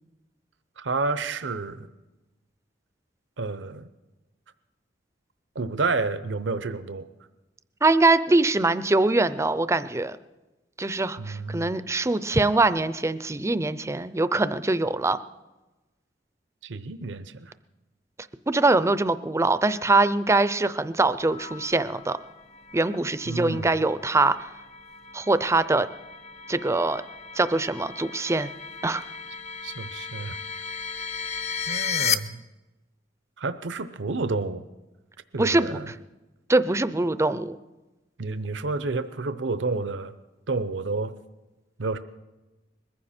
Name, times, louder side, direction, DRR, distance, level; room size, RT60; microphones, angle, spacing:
voice 1, 0.8-1.9 3.4-3.9 5.5-7.1 11.2-11.9 16.6-17.5 23.3-23.8 29.6-30.4 31.7-32.4 33.4-34.6 35.3-35.9 38.2-40.1 40.5-41.1 41.8-42.0, right 3 dB, 75° right, 12 dB, 0.8 m, -30 dB
voice 2, 7.8-10.2 10.8-15.2 18.5-22.2 22.7-24.4 25.1-25.9 26.5-27.0 27.4-28.5 28.8-29.0 35.4-35.8 36.5-37.6, right 2 dB, 15° right, 14 dB, 0.5 m, -23 dB
sound 1, 21.2-32.1, left 6 dB, 35° left, 0.6 m, -35 dB
21.5 x 15.0 x 4.4 m, 1.1 s
head